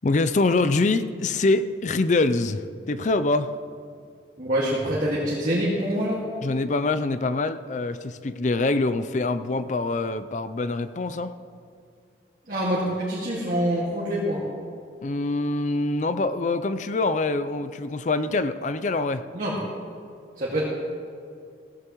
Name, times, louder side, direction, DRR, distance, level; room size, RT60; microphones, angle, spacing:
voice 1, 0.0-3.5 6.4-11.3 15.0-19.2, left 3 dB, 45° left, 11 dB, 0.5 m, -24 dB
voice 2, 4.4-6.2 12.5-14.4 19.3-19.5 20.4-20.6, equal, 50° right, -7 dB, 2.0 m, -25 dB
16.0 x 14.5 x 3.1 m, 2.3 s
head